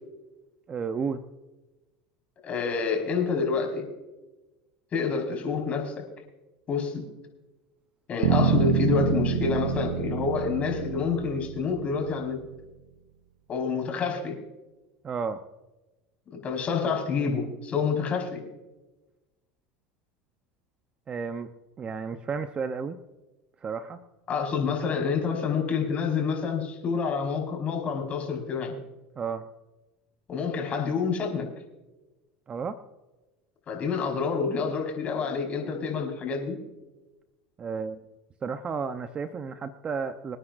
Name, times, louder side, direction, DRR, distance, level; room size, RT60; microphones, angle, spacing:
voice 1, 0.7-1.2 15.0-15.4 21.1-21.5 21.8-23.0 23.6-24.0 29.2-29.4 32.5-32.8 37.6-38.0 38.4-40.4, right 5 dB, 30° right, 9 dB, 0.8 m, -32 dB
voice 2, 2.4-3.9 4.9-6.0 6.7-7.1 8.1-12.4 13.5-14.4 16.3-18.4 24.3-28.7 30.3-31.5 33.7-36.6, left 5 dB, 40° left, 2 dB, 4.9 m, -28 dB
sound 1, 8.2-12.3, right 8 dB, 90° right, 0.8 m, -27 dB
27.0 x 9.8 x 2.6 m, 1.1 s
supercardioid pair, 100°, 4 cm